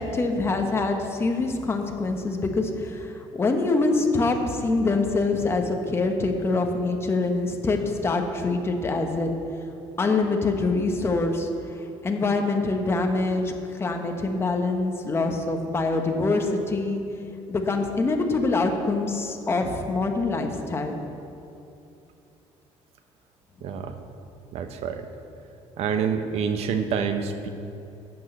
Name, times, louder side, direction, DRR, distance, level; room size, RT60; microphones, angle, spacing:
voice 1, 0.0-9.4 10.0-11.5 12.0-13.5 13.8-17.0 17.5-21.0, left 3 dB, 20° left, 4 dB, 1.1 m, -25 dB
voice 2, 23.6-23.9 24.5-25.1 25.8-27.5, right 6 dB, 65° right, 8 dB, 0.9 m, -27 dB
11.5 x 6.3 x 7.9 m, 2.7 s
cardioid pair, 150°, 12 cm